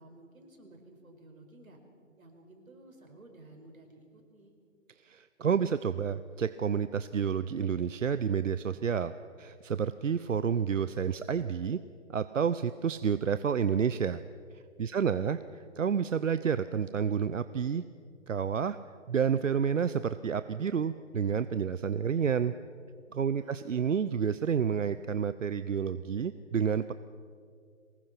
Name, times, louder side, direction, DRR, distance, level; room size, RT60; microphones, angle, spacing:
voice 1, 0.0-1.8 2.2-4.5 14.9-15.4 23.3-23.7, right 2 dB, 90° right, 3 dB, 5.2 m, -54 dB
voice 2, 5.0-9.1 9.4-11.8 12.1-14.2 14.8-15.4 15.8-17.8 18.3-18.8 19.1-22.5 23.1-26.9, right 7 dB, 65° right, 13 dB, 0.7 m, -29 dB
23.0 x 20.0 x 5.9 m, 2.3 s
hypercardioid pair, 180°, 41 cm